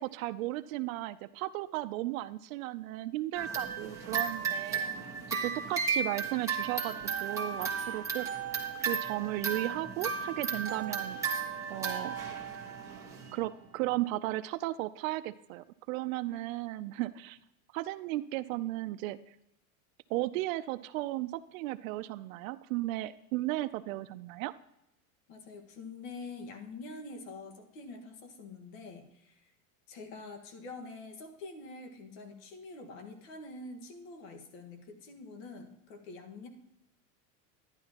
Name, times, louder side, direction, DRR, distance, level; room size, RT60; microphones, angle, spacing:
voice 1, 0.0-8.3 8.8-11.2 11.7-12.2 13.3-17.4 17.7-19.2 20.1-24.5, right 17 dB, 75° right, 14 dB, 0.5 m, -35 dB
sound 1, 3.3-13.3, right 5 dB, 5° right, 1.4 m, -34 dB
voice 2, 25.3-29.5 29.9-36.5, left 3 dB, 65° left, 5 dB, 1.6 m, -46 dB
11.5 x 10.5 x 2.9 m, 0.85 s
supercardioid pair, 160°, 41 cm